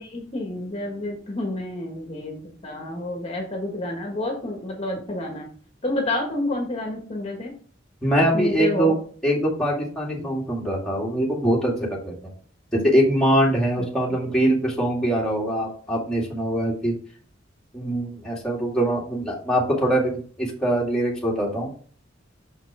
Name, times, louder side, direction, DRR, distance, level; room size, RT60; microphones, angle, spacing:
voice 1, 0.0-5.5 5.8-7.5 8.3-8.9 13.8-13.9, left 1 dB, 30° left, 0 dB, 1.5 m, -29 dB
voice 2, 8.0-8.9 9.2-12.2 12.7-16.9 17.7-21.7, right 1 dB, 5° left, -4 dB, 2.2 m, -23 dB
6.3 x 5.9 x 3.4 m, 0.44 s
head